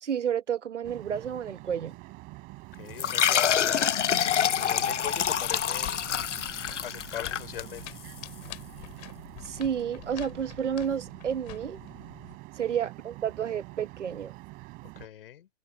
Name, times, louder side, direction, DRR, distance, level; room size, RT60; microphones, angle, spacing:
voice 1, 0.0-2.0 9.4-11.8 12.5-14.3, right 8 dB, 70° right, 1.8 m, -31 dB
sound 1, 0.8-15.1, right 24 dB, 25° right, 5.3 m, -46 dB
voice 2, 2.7-3.9 4.4-6.1 6.8-8.0 14.9-15.5, left 11 dB, 50° left, 6.6 m, -41 dB
sound 2, 3.0-8.1, left 9 dB, 75° left, 1.0 m, -26 dB
sound 3, 5.0-12.4, left 19 dB, 35° left, 4.4 m, -46 dB
hypercardioid pair, 150°, 36 cm